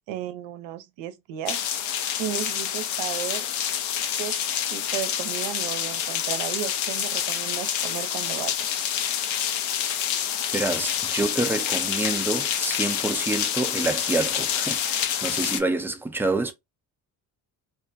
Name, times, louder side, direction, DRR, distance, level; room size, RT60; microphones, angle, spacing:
voice 1, 0.1-3.5 4.2-4.4 4.7-8.5, right 11 dB, 70° right, 0.6 m, -34 dB
sound 1, 1.5-15.6, left 9 dB, 70° left, 0.6 m, -27 dB
voice 2, 10.5-16.5, right 3 dB, 5° right, 0.4 m, -27 dB
2.6 x 2.1 x 2.5 m
supercardioid pair, 65°, 47 cm